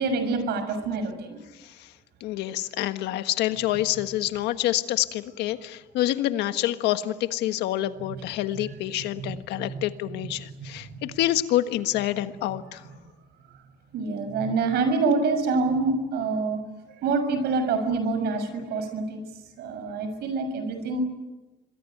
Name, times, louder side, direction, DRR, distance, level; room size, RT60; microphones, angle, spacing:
voice 1, 0.0-1.4 9.2-9.3 9.6-9.8 10.6-11.0 13.9-16.6 17.0-19.2 19.6-21.0, right 4 dB, 75° right, 9 dB, 6.6 m, -26 dB
voice 2, 1.6-1.9 2.2-12.8, left 14 dB, 90° left, 10 dB, 1.5 m, -27 dB
26.5 x 22.5 x 9.3 m, 1.1 s
cardioid pair, 110°, 17 cm